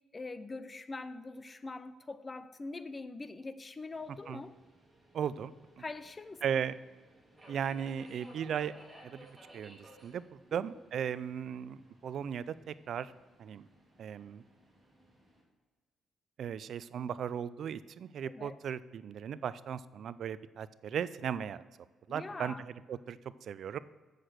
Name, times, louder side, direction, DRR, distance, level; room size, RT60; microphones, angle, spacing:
voice 1, 0.1-4.6 5.8-6.4 10.5-10.7 18.2-18.6 22.1-22.6, left 3 dB, 25° left, 13 dB, 0.6 m, -43 dB
Subway metro underground, 3.9-15.4, right 1 dB, 10° right, 2.6 m, -59 dB
voice 2, 5.1-5.8 6.4-6.7 7.5-8.7 9.0-10.2 10.5-13.1 13.4-13.7 14.0-14.4 16.4-21.6 22.1-23.8, right 8 dB, 65° right, 16 dB, 0.4 m, -37 dB
7.7 x 6.5 x 6.4 m, 1.3 s
cardioid pair, 90°, 0 cm